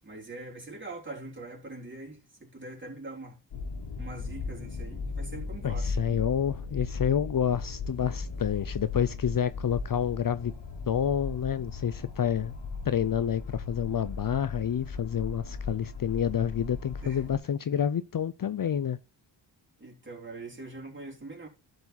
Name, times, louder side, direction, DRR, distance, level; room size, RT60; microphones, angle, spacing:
voice 1, 0.0-3.4 4.0-5.9 17.0-17.2 19.8-21.5, right 2 dB, 25° right, 3.6 m, -43 dB
sound 1, 3.5-17.4, left 4 dB, 80° left, 2.1 m, -37 dB
voice 2, 5.6-10.5 10.9-12.5 12.9-19.0, left 8 dB, 50° left, 0.6 m, -28 dB
12.0 x 4.8 x 4.2 m
cardioid pair, 65°, 44 cm